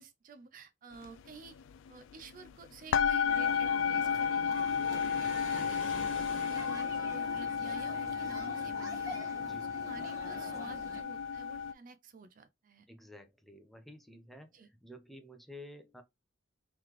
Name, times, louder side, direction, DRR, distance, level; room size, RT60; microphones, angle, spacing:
voice 1, 0.0-1.6 1.9-4.7 5.2-5.8 6.2-12.9 14.5-14.7, right 4 dB, 45° right, 0.4 m, -51 dB
sound 1, 1.0-1.2 1.5-2.5 2.9-11.7, left 6 dB, 70° left, 0.3 m, -33 dB
sound 2, 3.2-11.0, equal, 20° right, 1.4 m, -46 dB
Waves surf, 4.0-7.5, left 3 dB, 90° left, 1.3 m, -47 dB
voice 2, 9.4-9.7 12.9-16.0, left 1 dB, ahead, 0.6 m, -52 dB
3.8 x 3.2 x 3.0 m
head